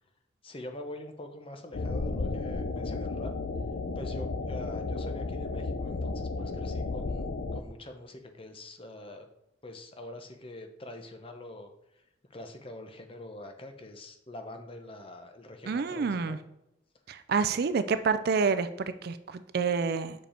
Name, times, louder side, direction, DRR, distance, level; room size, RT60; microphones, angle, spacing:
voice 1, 0.4-3.3 4.0-7.3 7.5-9.3 9.6-12.0 12.3-16.4 17.5-17.6, left 1 dB, 30° left, 5 dB, 0.8 m, -44 dB
sound 1, 1.7-7.6, left 3 dB, 65° left, 0.6 m, -33 dB
voice 2, 15.7-16.4 17.1-20.3, right 5 dB, 50° right, 12 dB, 0.4 m, -28 dB
6.7 x 5.0 x 4.4 m, 0.84 s
head